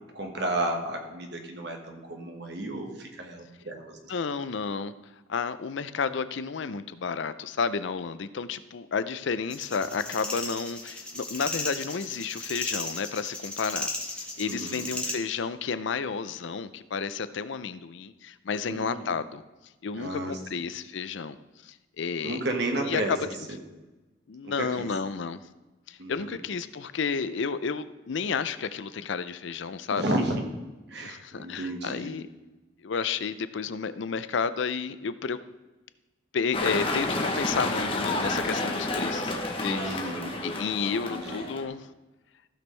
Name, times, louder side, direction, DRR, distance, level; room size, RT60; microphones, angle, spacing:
voice 1, 0.1-4.0 14.4-14.9 18.7-19.1 19.9-20.6 22.2-23.2 23.5-23.6 24.4-24.9 26.0-26.4 29.9-30.5 30.9-32.1 39.6-40.4 41.1-41.5, right 1 dB, 55° right, 1.4 m, -32 dB
voice 2, 4.1-4.9 5.3-19.4 19.8-21.4 21.6-22.4 22.9-23.2 24.3-25.4 25.9-30.0 31.0-32.3 32.8-35.4 36.3-39.3 39.6-40.1 40.4-41.9, left 5 dB, 70° left, 0.5 m, -31 dB
sound 1, 9.5-15.2, left 2 dB, 5° left, 1.1 m, -35 dB
sound 2, 36.5-41.6, left 2 dB, 25° left, 0.9 m, -30 dB
15.0 x 6.2 x 3.3 m
head